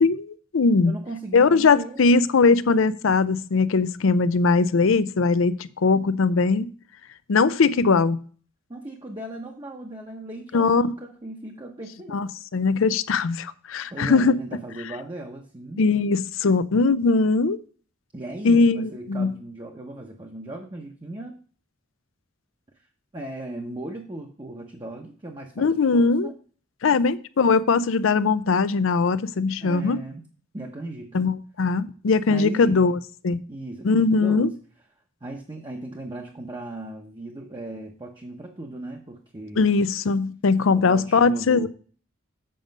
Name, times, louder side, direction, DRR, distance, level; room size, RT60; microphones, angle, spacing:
voice 1, 0.0-0.9 1.3-6.7 7.3-8.2 10.5-10.9 12.1-14.4 15.8-17.6 18.4-19.4 25.6-26.3 26.8-30.0 31.1-33.0 33.2-33.4 33.8-34.5 39.6-41.7, left 4 dB, 75° left, 0.5 m, -20 dB
voice 2, 0.8-2.0 8.7-12.3 13.9-15.8 18.1-21.4 23.1-26.3 29.6-30.3 30.5-31.3 32.3-32.9 33.5-34.5 35.2-39.6 40.7-41.7, right 1 dB, 25° right, 0.8 m, -37 dB
7.8 x 5.2 x 5.2 m
head